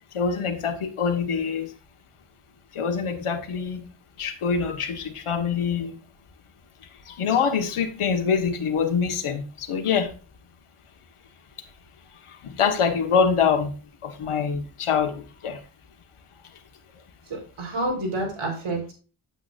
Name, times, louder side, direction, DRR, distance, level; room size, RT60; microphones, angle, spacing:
voice 1, 0.1-1.7 2.7-3.9 4.2-6.0 7.0-10.1 12.3-13.7 14.0-15.6, left 6 dB, 90° left, 5 dB, 1.5 m, -25 dB
voice 2, 17.3-18.9, right 2 dB, 80° right, 0 dB, 4.5 m, -29 dB
8.8 x 8.0 x 2.5 m, 0.35 s
wide cardioid pair, 95°, 49 cm